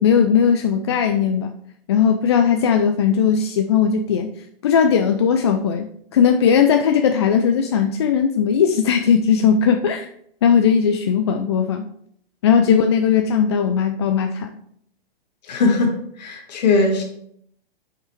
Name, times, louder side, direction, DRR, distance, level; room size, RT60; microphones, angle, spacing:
voice 1, 0.0-1.6 1.9-4.3 4.6-10.1 10.4-11.9 12.4-14.5, left 7 dB, 30° left, 0.4 m, -18 dB
voice 2, 15.5-17.0, left 3 dB, 45° left, 1.9 m, -19 dB
8.7 x 5.7 x 3.1 m
figure-of-eight pair, 120°, 29 cm